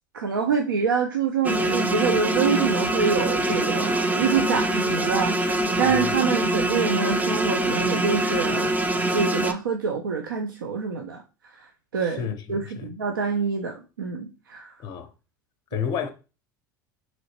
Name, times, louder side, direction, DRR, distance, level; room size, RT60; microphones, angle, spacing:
voice 1, 0.1-11.2 11.6-14.7, right 6 dB, 85° right, 0.4 m, -26 dB
sound 1, 1.4-9.5, right 1 dB, 15° right, 0.4 m, -24 dB
voice 2, 12.0-12.9 14.8-15.1 15.7-16.1, left 7 dB, 40° left, 0.5 m, -31 dB
3.0 x 2.8 x 2.8 m
hypercardioid pair, 75°, 11 cm